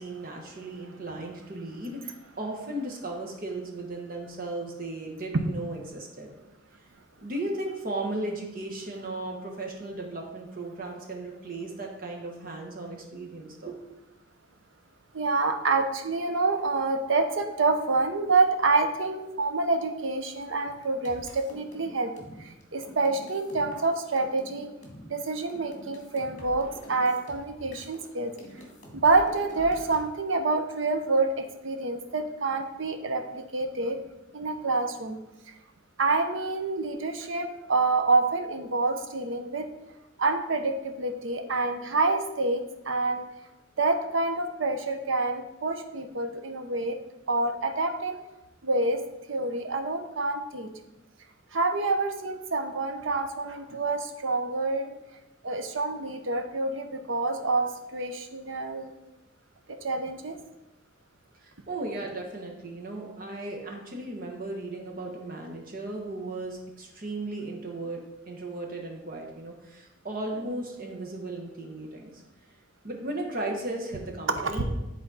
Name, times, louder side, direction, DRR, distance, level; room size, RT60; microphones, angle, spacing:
voice 1, 0.0-6.3 7.2-13.8 61.4-72.2 72.8-74.6, right 2 dB, 45° right, 0 dB, 1.3 m, -36 dB
voice 2, 15.1-22.1 22.4-24.7 25.1-28.3 28.9-34.0 34.3-35.2 36.0-39.7 40.2-43.2 43.8-47.0 47.3-48.2 48.6-49.0 49.3-50.7 51.5-54.9 55.4-58.9 59.8-60.4 74.6-74.7, right 3 dB, 90° right, 7 dB, 0.8 m, -27 dB
sound 1, 20.7-28.1 28.4-30.0, equal, 40° left, 1.6 m, -46 dB
10.0 x 4.2 x 4.1 m, 0.99 s
head